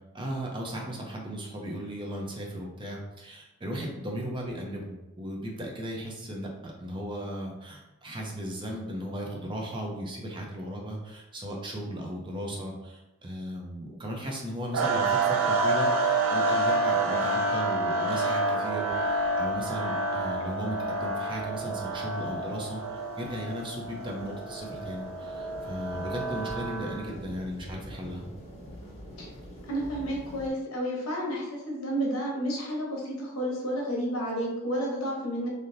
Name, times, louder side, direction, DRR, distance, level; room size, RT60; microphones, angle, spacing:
voice 1, 0.1-22.8 23.2-28.3, equal, 25° right, -1 dB, 0.5 m, -36 dB
sound 1, 14.7-27.1, right 2 dB, 90° right, 0.5 m, -28 dB
sound 2, 18.9-30.5, equal, 30° left, 0.8 m, -47 dB
voice 2, 29.6-35.5, equal, 90° left, -2 dB, 1.0 m, -31 dB
3.3 x 2.7 x 2.6 m, 1.0 s
head